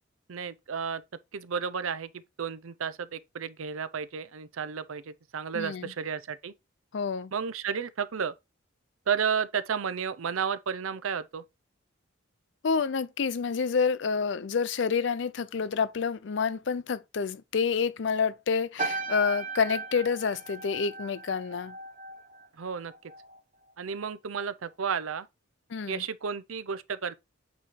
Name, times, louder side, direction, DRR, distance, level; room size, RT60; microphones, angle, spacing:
voice 1, 0.3-1.0 1.3-6.5 7.3-8.3 9.1-11.4 22.6-22.9 23.8-25.3 25.9-27.2, right 6 dB, 90° right, 0.6 m, -32 dB
voice 2, 5.5-5.9 6.9-7.3 12.6-21.7 25.7-26.0, left 5 dB, 60° left, 0.4 m, -28 dB
sound 1, 18.8-23.4 23.7-24.1, right 3 dB, 35° right, 0.9 m, -37 dB
8.4 x 3.1 x 4.5 m
head